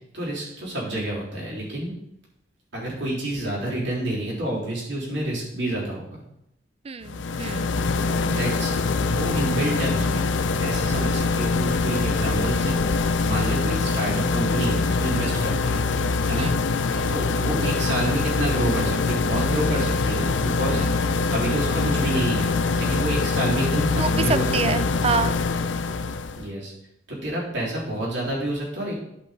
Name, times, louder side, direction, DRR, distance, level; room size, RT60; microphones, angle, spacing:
voice 1, 0.1-1.9 2.7-6.0 8.1-8.8 9.1-10.3 10.6-15.8 16.3-16.5 17.1-24.8 26.4-26.7 27.1-29.0, right 1 dB, 65° right, -6 dB, 3.7 m, -28 dB
voice 2, 6.8-7.8 16.4-16.6 16.9-17.1 20.7-20.9 24.0-25.4, right 5 dB, 30° right, 13 dB, 0.4 m, -27 dB
sound 1, 7.0-26.4, left 4 dB, 70° left, 0.5 m, -24 dB
11.0 x 5.5 x 4.1 m, 0.79 s
head